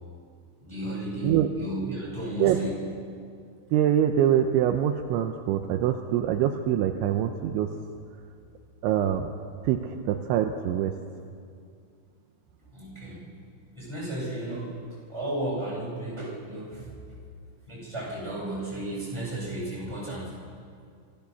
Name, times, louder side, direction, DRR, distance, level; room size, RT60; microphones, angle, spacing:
voice 1, 0.6-2.8 12.7-13.3 13.7-14.7 15.1-16.9 17.7-20.3, right 1 dB, 5° right, -6 dB, 7.6 m, -33 dB
voice 2, 3.7-7.7 8.8-9.3 9.6-10.9, right 10 dB, 80° right, 5 dB, 3.0 m, -24 dB
26.5 x 16.5 x 7.0 m, 2.3 s
omnidirectional pair, 5.7 m